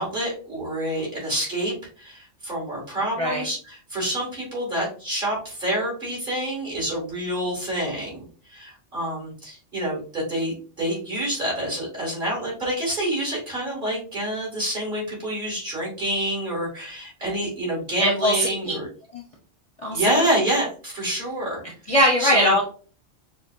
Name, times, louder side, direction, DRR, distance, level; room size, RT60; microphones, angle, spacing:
voice 1, 0.0-18.9 19.9-21.6 22.2-22.5, right 1 dB, 45° right, -4 dB, 2.6 m, -27 dB
voice 2, 18.0-18.7 19.1-19.2 19.8-20.2 21.9-22.6, equal, 30° left, -3 dB, 0.8 m, -21 dB
6.4 x 2.3 x 2.6 m, 0.39 s
omnidirectional pair, 1.3 m